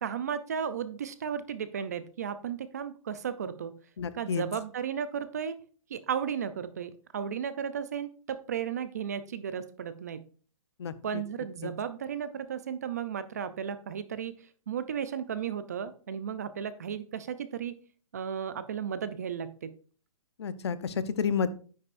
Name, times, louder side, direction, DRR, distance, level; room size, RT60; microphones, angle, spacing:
voice 1, 0.0-3.7 4.1-5.6 5.9-10.2 11.0-14.3 14.7-17.7 18.1-19.7, right 8 dB, 30° right, 13 dB, 0.5 m, -34 dB
voice 2, 4.0-4.4 10.8-11.2 11.6-11.7 20.4-21.5, left 6 dB, 50° left, 14 dB, 0.7 m, -30 dB
9.7 x 8.7 x 2.5 m, 0.39 s
hypercardioid pair, 175°, 17 cm